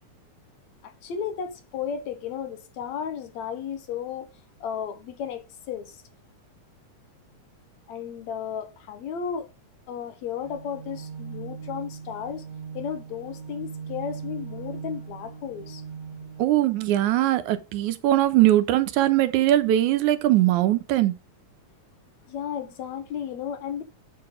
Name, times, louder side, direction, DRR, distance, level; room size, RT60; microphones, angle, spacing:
voice 1, 0.8-4.3 4.6-6.0 7.9-9.5 9.9-12.4 12.7-15.8 22.3-23.8, left 8 dB, 70° left, 2.4 m, -34 dB
sound 1, 10.4-16.4, right 6 dB, 40° right, 1.5 m, -39 dB
voice 2, 16.4-21.2, right 14 dB, 85° right, 2.3 m, -21 dB
8.7 x 6.9 x 3.7 m
omnidirectional pair, 3.4 m